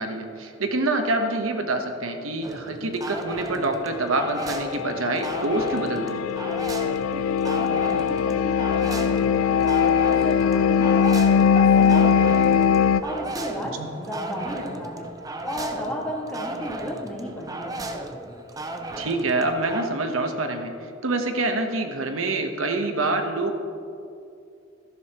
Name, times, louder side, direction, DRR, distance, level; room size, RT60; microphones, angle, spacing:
voice 1, 0.0-6.2 13.8-13.9 19.0-20.7 21.0-23.6, right 2 dB, 90° right, 5 dB, 1.0 m, -26 dB
sound 1, 2.4-19.9, right 2 dB, 20° right, 0.5 m, -35 dB
sound 2, 4.5-13.0, left 7 dB, 90° left, 0.3 m, -21 dB
voice 2, 7.1-11.2 11.5-15.1 15.5-17.9, equal, 5° left, -4 dB, 1.8 m, -34 dB
13.5 x 11.0 x 3.0 m, 2.5 s
head